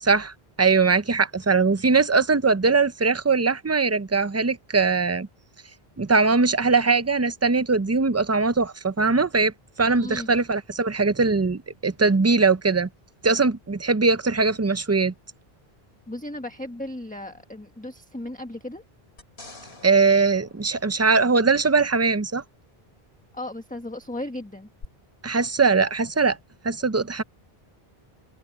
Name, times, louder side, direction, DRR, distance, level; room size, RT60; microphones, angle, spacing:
voice 1, 0.0-0.3 0.6-5.3 6.0-9.5 9.8-12.9 13.2-15.1 19.8-22.4 25.2-26.4 26.6-27.2, right 4 dB, 20° right, 0.5 m, -21 dB
voice 2, 9.9-10.3 16.1-18.8 23.3-24.7, left 1 dB, 10° left, 1.2 m, -35 dB
sound 1, 19.2-21.7 24.8-24.9, left 3 dB, 80° left, 3.5 m, -47 dB
open air
omnidirectional pair, 1.0 m